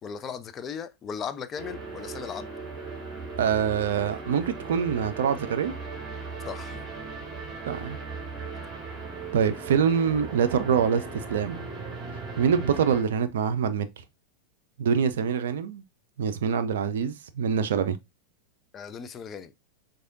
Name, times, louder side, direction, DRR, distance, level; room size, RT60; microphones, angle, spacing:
voice 1, 0.0-2.5 6.4-6.8 18.7-19.5, left 7 dB, 25° left, 0.4 m, -37 dB
sound 1, 1.6-13.0, right 4 dB, 15° right, 1.9 m, -38 dB
voice 2, 3.4-5.7 7.7-8.0 9.3-11.7 12.4-13.9 14.8-15.8 16.2-18.0, right 7 dB, 60° right, 0.4 m, -25 dB
4.7 x 2.6 x 2.6 m
figure-of-eight pair, 90°, 0 cm